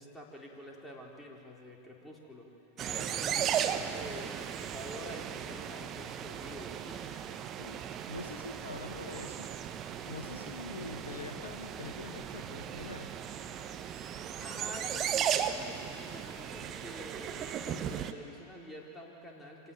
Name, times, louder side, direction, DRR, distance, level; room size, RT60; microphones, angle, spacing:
voice 1, 0.0-2.5 2.9-7.1 14.3-19.7, equal, 10° left, -2 dB, 4.1 m, -47 dB
sound 1, 2.8-18.1, right 9 dB, 30° right, 1.1 m, -36 dB
voice 2, 7.6-9.5 10.1-13.2, left 3 dB, 75° left, 6 dB, 1.3 m, -44 dB
25.5 x 18.0 x 9.1 m, 2.9 s
figure-of-eight pair, 90°, 0 cm